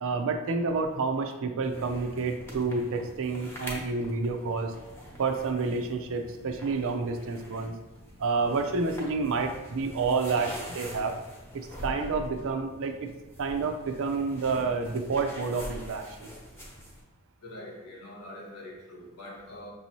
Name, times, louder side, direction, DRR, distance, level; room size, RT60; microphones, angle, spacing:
voice 1, 0.0-4.7 5.2-7.7 8.2-11.1 11.5-12.9 13.4-16.3, right 4 dB, 65° right, 5 dB, 0.5 m, -29 dB
sound 1, 1.6-17.0, equal, 10° left, 0.9 m, -44 dB
voice 2, 17.4-19.7, left 1 dB, 70° left, -2 dB, 1.1 m, -44 dB
6.0 x 2.7 x 3.0 m, 1.1 s
head